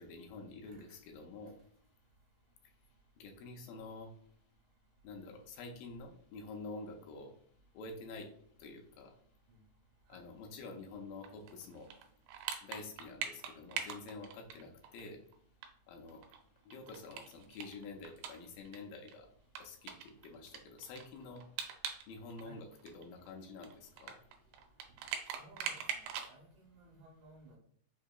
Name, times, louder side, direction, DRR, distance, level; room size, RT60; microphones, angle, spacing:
voice 1, 0.0-1.6 3.2-4.1 5.0-7.3 7.7-8.3 8.6-9.1 10.1-11.9 12.6-15.2 15.9-16.2 16.7-19.3 19.6-21.4 22.1-24.2, left 3 dB, 85° left, 2 dB, 2.3 m, -48 dB
sound 1, 11.2-15.0 15.3-15.4 15.6-15.7 16.1-18.8 19.1-19.2 19.6-22.1 22.3-26.3, right 8 dB, 90° right, 2.4 m, -42 dB
voice 2, 25.4-27.6, right 2 dB, 70° right, -1 dB, 2.2 m, -58 dB
5.7 x 2.7 x 2.3 m, 0.62 s
omnidirectional pair, 4.2 m